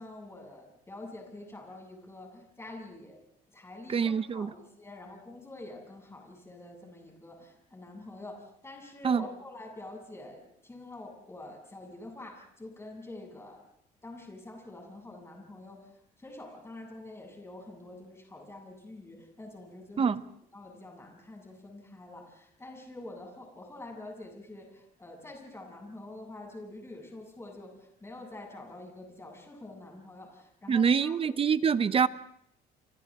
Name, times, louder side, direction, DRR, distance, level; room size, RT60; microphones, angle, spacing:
voice 1, 0.0-3.2 3.5-13.6 14.0-20.2 20.5-31.6, left 2 dB, 15° left, 7.2 m, -46 dB
voice 2, 3.9-4.5 9.0-9.2 20.0-20.2 30.7-32.1, right 6 dB, 35° right, 0.9 m, -25 dB
29.5 x 25.5 x 3.7 m
cardioid pair, 110°, 17 cm